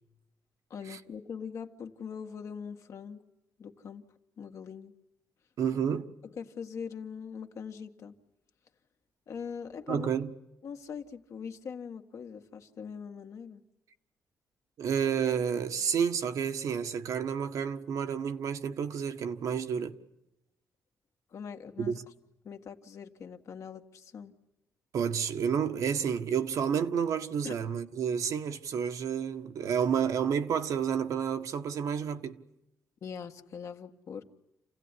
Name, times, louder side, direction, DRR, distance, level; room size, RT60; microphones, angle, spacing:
voice 1, 0.7-3.2 3.6-4.0 4.4-4.9 6.2-8.1 9.3-10.1 10.6-13.6 21.3-22.0 22.4-24.3 27.4-27.5 33.0-34.2, left 6 dB, 60° left, 1.9 m, -42 dB
voice 2, 5.6-6.1 9.9-10.3 14.8-19.9 21.8-22.0 24.9-32.4, right 7 dB, 75° right, 1.5 m, -30 dB
28.5 x 16.5 x 9.9 m
cardioid pair, 100°, 6 cm